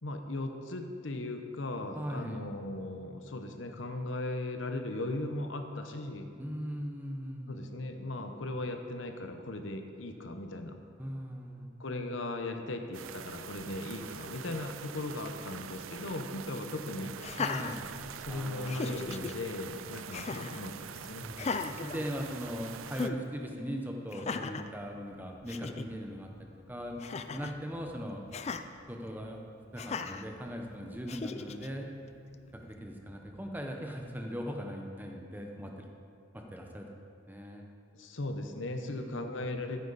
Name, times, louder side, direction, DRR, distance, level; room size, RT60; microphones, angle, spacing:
voice 1, 0.0-6.3 7.5-10.8 11.8-17.1 18.2-21.2 37.9-39.8, left 2 dB, 70° left, 5 dB, 0.9 m, -38 dB
voice 2, 1.9-2.5 6.4-7.6 11.0-11.7 17.4-17.8 18.3-18.8 21.2-21.5 21.8-27.0 27.3-28.2 28.9-29.4 29.7-31.9 32.5-35.9 36.3-36.9 37.3-37.6 38.9-39.3, equal, 10° right, 2 dB, 0.9 m, -39 dB
sound 1, 12.9-23.1, right 8 dB, 90° right, 0.5 m, -45 dB
Laughter, 17.2-18.3 18.7-19.3 20.1-20.6 21.3-22.6 23.0-23.2 24.1-24.7 25.2-25.3 25.5-25.9 27.0-27.6 28.3-28.6 29.8-30.3 31.1-31.7, left 4 dB, 35° left, 0.4 m, -37 dB
sound 2, 25.0-34.0, left 1 dB, 50° left, 1.5 m, -61 dB
14.0 x 9.5 x 4.1 m, 2.4 s
head